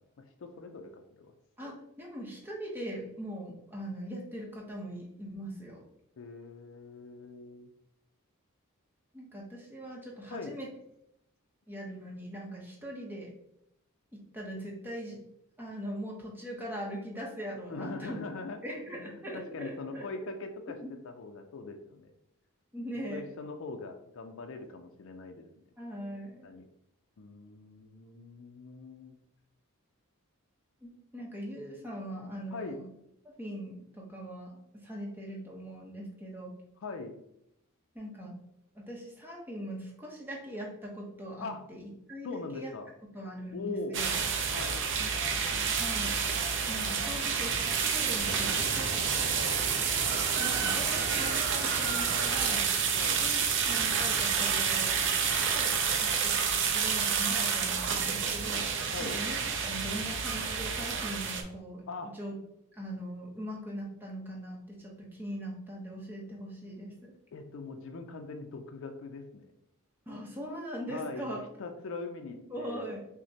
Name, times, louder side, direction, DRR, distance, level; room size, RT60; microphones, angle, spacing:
voice 1, 0.2-1.3 6.2-7.7 10.3-10.6 17.7-18.6 19.0-20.8 21.0-22.1 23.1-25.5 26.4-26.6 27.2-29.1 32.5-32.8 36.8-37.2 41.4-41.6 42.2-42.9 43.5-44.0 44.5-44.8 49.3-49.7 52.9-53.2 55.7-56.4 58.9-59.2 61.9-62.1 67.3-69.5 70.9-72.9, left 3 dB, 60° left, 5 dB, 0.4 m, -41 dB
voice 2, 1.6-5.8 9.1-10.7 11.7-13.3 14.1-15.2 15.6-18.2 18.6-20.1 20.8-20.9 22.7-23.2 25.8-26.5 30.8-32.8 33.4-36.6 37.9-38.4 38.7-42.7 43.1-44.1 45.8-46.2 46.7-49.1 50.4-52.7 53.2-55.0 55.4-58.7 59.0-62.4 62.7-67.1 70.1-71.4 72.5-73.1, equal, 10° right, -2 dB, 0.8 m, -41 dB
sound 1, 43.9-61.4, right 6 dB, 55° right, 0.5 m, -29 dB
sound 2, 48.2-55.6, equal, 10° left, 1.3 m, -44 dB
5.8 x 2.1 x 2.7 m, 0.78 s
head